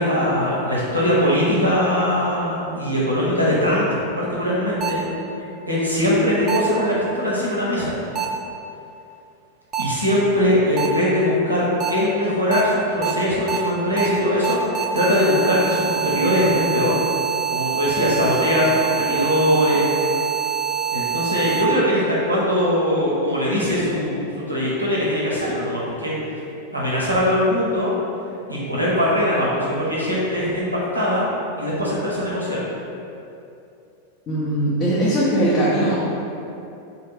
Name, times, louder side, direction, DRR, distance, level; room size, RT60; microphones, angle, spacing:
voice 1, 0.0-3.8 4.2-5.0 5.7-8.0 9.8-17.0 17.5-19.9 20.9-26.4 26.7-27.9 28.5-30.7 30.9-31.3 31.6-32.6, left 1 dB, 85° right, -7 dB, 0.7 m, -21 dB
sound 1, 4.8-4.9 6.5-6.6 8.2-8.3 9.7-9.8 10.8-10.9 11.8-11.9 12.5-12.6 13.0-13.1 13.5-13.6 14.0-14.1 14.4-21.6, right 8 dB, 30° right, 0.3 m, -25 dB
voice 2, 34.3-36.0, right 1 dB, 30° left, -9 dB, 0.5 m, -20 dB
2.4 x 2.3 x 3.2 m, 2.7 s
figure-of-eight pair, 90°, 0 cm